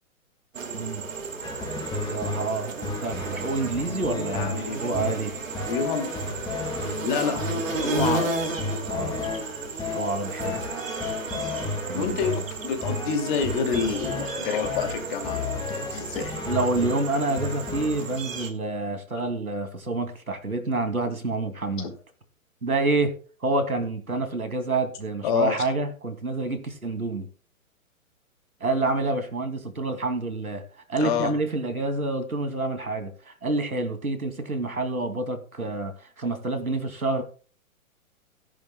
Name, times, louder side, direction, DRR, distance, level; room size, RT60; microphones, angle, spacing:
sound 1, 0.5-18.5, right 4 dB, 65° right, 2.6 m, -33 dB
voice 1, 0.7-1.0 2.1-2.7 3.0-5.3 8.9-9.3 9.9-10.6 11.8-12.2 16.5-21.9 22.6-23.1 23.4-27.3 28.6-30.6 30.9-37.2, right 2 dB, 85° right, 7 dB, 2.7 m, -28 dB
sound 2, 1.4-18.2, left 4 dB, 10° left, 2.4 m, -33 dB
voice 2, 4.1-5.1 5.7-6.4 7.0-8.3 11.9-15.4 15.7-16.4 21.8-21.9 25.2-25.5 31.0-31.3, left 6 dB, 35° left, 5 dB, 2.5 m, -28 dB
sound 3, 6.3-6.5 7.7-7.9 9.1-9.3 10.5-10.7 12.0-12.2 13.4-13.6 14.8-15.0, left 5 dB, 80° left, 1.7 m, -41 dB
17.5 x 10.5 x 2.3 m, 0.38 s
figure-of-eight pair, 125°, 42 cm